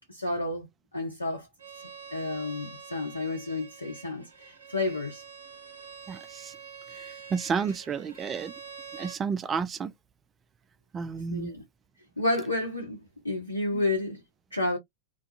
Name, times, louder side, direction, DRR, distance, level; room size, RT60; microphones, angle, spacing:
voice 1, 0.1-0.7 0.9-1.5 2.1-5.2 11.3-11.6 12.2-14.2 14.5-14.8, left 2 dB, 80° left, 0.6 m, -30 dB
Bowed string instrument, 1.6-9.2, right 6 dB, 70° right, 0.7 m, -46 dB
voice 2, 6.1-6.5 7.3-8.5 9.0-9.9 10.9-11.5, right 5 dB, 20° right, 0.3 m, -31 dB
2.3 x 2.3 x 2.5 m
figure-of-eight pair, 90°, 0 cm